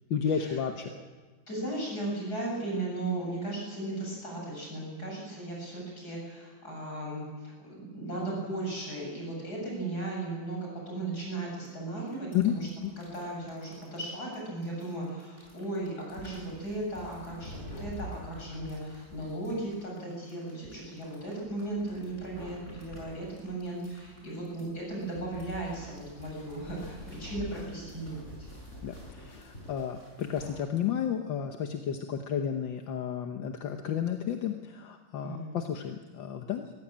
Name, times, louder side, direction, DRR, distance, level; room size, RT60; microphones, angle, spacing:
voice 1, 0.1-0.9 12.3-12.9 28.8-36.7, left 8 dB, 75° left, 5 dB, 1.8 m, -32 dB
voice 2, 1.5-12.7 13.0-28.5 35.1-35.5, right 2 dB, 55° left, -2 dB, 7.8 m, -36 dB
sound 1, 11.6-11.7 12.0-30.6, equal, 35° left, 6.9 m, -47 dB
22.5 x 16.0 x 8.8 m, 1.3 s
omnidirectional pair, 2.1 m